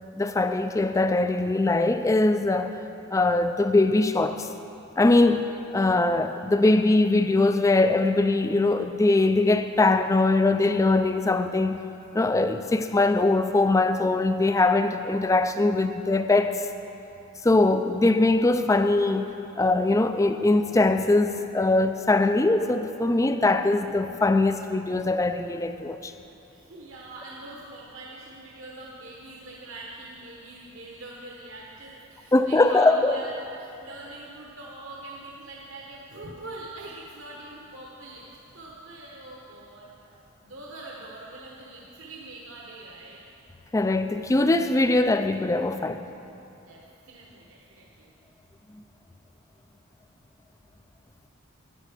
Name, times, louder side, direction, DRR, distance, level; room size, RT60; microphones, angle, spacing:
voice 1, 0.1-2.8 3.1-4.5 5.0-11.8 12.1-16.7 17.4-26.1 32.3-33.2 43.7-46.0, left 2 dB, 15° left, 0.3 m, -22 dB
voice 2, 26.5-38.3 38.5-43.2 46.7-48.1, right 2 dB, 65° right, 1.1 m, -43 dB
11.5 x 9.2 x 5.0 m
head